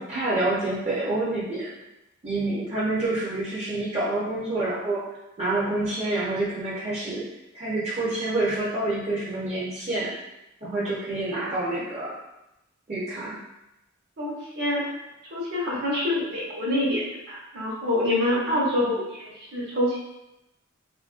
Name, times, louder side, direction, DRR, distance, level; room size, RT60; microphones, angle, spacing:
voice 1, 0.0-1.7 2.2-5.1 5.4-7.2 7.5-10.1 10.6-12.1 12.9-13.4 18.5-18.9, right 2 dB, 35° right, -7 dB, 0.6 m, -27 dB
voice 2, 14.2-14.8 15.3-20.0, left 1 dB, 55° right, -5 dB, 0.9 m, -26 dB
3.0 x 2.5 x 2.4 m, 0.91 s
head